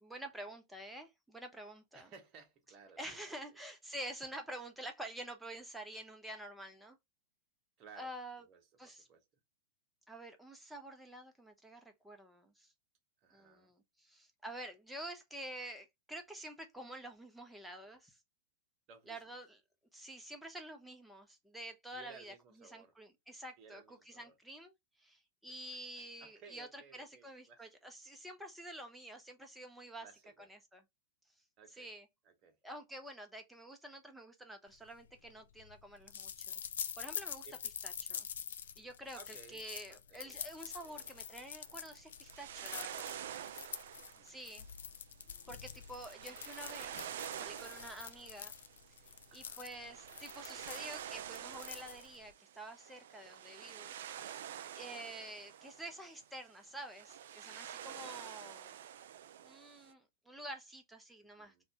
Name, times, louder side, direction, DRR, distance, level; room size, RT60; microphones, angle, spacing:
voice 1, 0.0-2.1 3.0-7.0 7.9-8.4 8.8-9.1 10.1-12.7 13.3-18.2 19.1-19.6 19.9-24.7 25.0-30.1 30.4-30.8 31.8-32.1 32.6-36.6 37.0-37.5 37.8-38.3 38.8-43.2 44.2-44.7 45.5-47.0 47.3-48.5 49.3-54.0 54.8-58.8 59.4-61.6, right 1 dB, 5° right, 0.9 m, -49 dB
voice 2, 1.9-3.4 7.8-9.2 13.2-13.7 18.9-19.4 21.9-22.9 23.6-24.4 26.2-27.9 30.0-30.5 31.6-31.9 32.2-32.6 37.4-37.6 39.2-40.4 40.8-41.1 43.9-44.4 46.4-46.8 49.3-49.6 54.6-55.1 61.2-61.6, right 6 dB, 35° right, 1.0 m, -59 dB
sound 1, 34.9-52.3, left 8 dB, 70° left, 0.4 m, -46 dB
sound 2, 40.4-59.9, right 10 dB, 65° right, 0.3 m, -48 dB
Bathtub (filling or washing) / Splash splatter, 46.7-52.4 53.3-53.5 54.9-55.0, left 3 dB, 20° left, 1.4 m, -70 dB
2.9 x 2.4 x 2.8 m
figure-of-eight pair, 100°, 0 cm